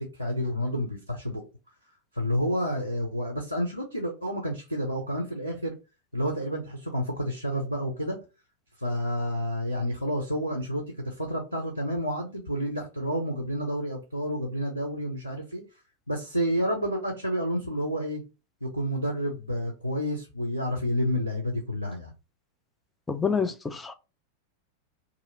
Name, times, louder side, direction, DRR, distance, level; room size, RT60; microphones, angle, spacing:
voice 1, 0.0-1.4 2.1-5.8 6.1-8.2 8.8-15.6 16.1-18.2 18.6-22.1, equal, 90° left, 0.7 m, -30 dB
voice 2, 23.1-23.9, left 5 dB, 10° left, 0.5 m, -27 dB
2.9 x 2.7 x 4.0 m
figure-of-eight pair, 90°, 0 cm